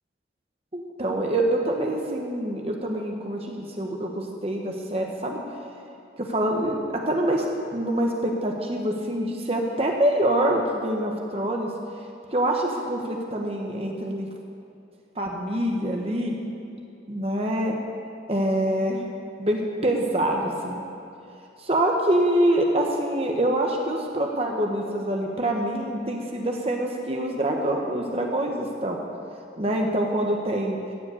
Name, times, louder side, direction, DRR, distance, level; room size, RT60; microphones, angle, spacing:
voice 1, 0.7-5.4 6.2-7.5 7.7-11.7 12.3-14.3 15.1-16.4 17.1-17.8 18.3-19.0 19.4-20.8 21.6-29.0 29.6-30.8, right 1 dB, 30° right, 1 dB, 1.2 m, -25 dB
14.5 x 8.2 x 8.4 m, 2.7 s
head